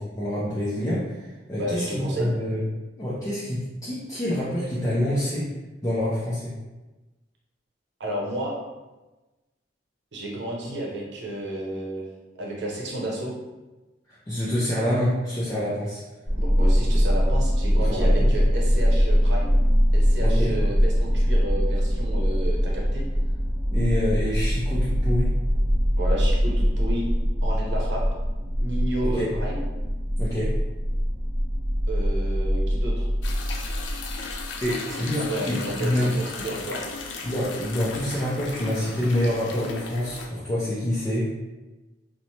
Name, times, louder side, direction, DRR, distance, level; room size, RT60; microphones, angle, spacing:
voice 1, 0.2-2.6 3.0-5.5 5.8-6.5 14.3-16.0 17.9-18.3 20.2-20.5 23.7-25.3 29.0-29.3 30.2-30.5 34.6-36.1 37.2-41.3, left 1 dB, 20° left, -9 dB, 0.4 m, -27 dB
voice 2, 1.6-2.3 8.0-8.6 10.1-12.0 12.4-13.3 16.4-19.6 19.9-23.1 26.0-27.1 27.4-28.0 28.6-29.7 31.9-33.1 34.9-36.8, right 1 dB, 70° right, -2 dB, 0.7 m, -31 dB
sound 1, 16.3-34.6, equal, 5° right, 1.0 m, -22 dB
sound 2, 33.2-40.3, left 4 dB, 85° left, 0.4 m, -36 dB
2.9 x 2.1 x 2.7 m, 1.1 s
head